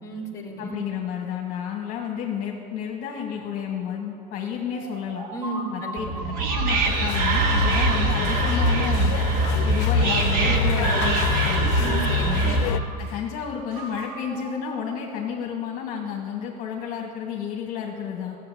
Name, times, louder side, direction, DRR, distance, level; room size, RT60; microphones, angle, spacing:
voice 1, 0.0-0.8 5.3-6.4 11.8-12.5, right 2 dB, 15° left, 1 dB, 2.0 m, -33 dB
voice 2, 0.6-5.3 5.7-6.0 6.5-9.2 9.6-11.7 13.0-18.4, left 8 dB, 45° left, 0 dB, 1.5 m, -31 dB
sound 1, 4.7-7.5 7.9-9.7 10.4-11.5 11.8-13.2 13.7-15.5, right 2 dB, 80° right, 3.1 m, -40 dB
Whispering, 6.0-12.9, right 2 dB, 45° right, 1.6 m, -22 dB
sound 2, 6.8-12.8, left 13 dB, 70° left, 0.6 m, -31 dB
14.5 x 7.7 x 9.8 m, 2.7 s
cardioid pair, 160°, 20 cm